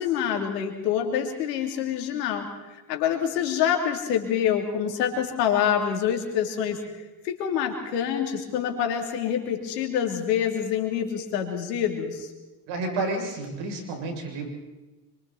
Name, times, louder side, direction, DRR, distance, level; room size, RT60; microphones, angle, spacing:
voice 1, 0.0-6.8 7.2-12.3, left 8 dB, 90° left, 3 dB, 3.5 m, -26 dB
voice 2, 12.7-14.5, right 2 dB, 70° right, 1 dB, 7.6 m, -30 dB
27.5 x 24.5 x 4.4 m, 1.1 s
hypercardioid pair, 65°, 47 cm